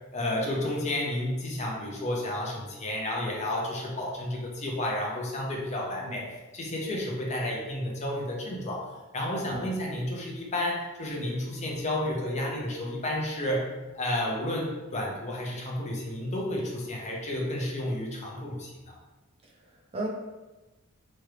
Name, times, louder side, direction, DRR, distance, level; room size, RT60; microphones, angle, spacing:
voice 1, 0.1-8.9 9.1-13.7 13.9-19.0, left 1 dB, 30° left, -2 dB, 0.5 m, -31 dB
voice 2, 6.0-6.3 9.4-9.8 19.4-20.1, right 1 dB, 25° right, -2 dB, 0.4 m, -37 dB
3.0 x 2.4 x 3.2 m, 1.1 s
head